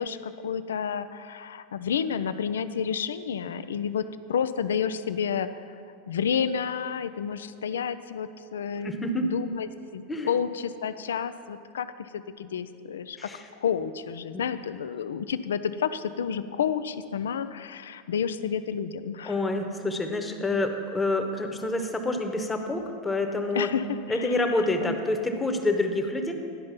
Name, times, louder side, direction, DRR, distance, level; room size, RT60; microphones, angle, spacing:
voice 1, 0.0-5.8 6.1-8.9 9.2-13.3 13.6-19.3 23.5-24.6 24.8-25.0, left 7 dB, 80° left, 13 dB, 0.4 m, -30 dB
voice 2, 8.8-9.3 10.1-10.4 13.2-13.4 14.3-14.4 19.2-23.7 24.1-26.3, left 2 dB, 15° left, 5 dB, 1.0 m, -27 dB
11.0 x 5.2 x 5.8 m, 2.3 s
hypercardioid pair, 95°, 0 cm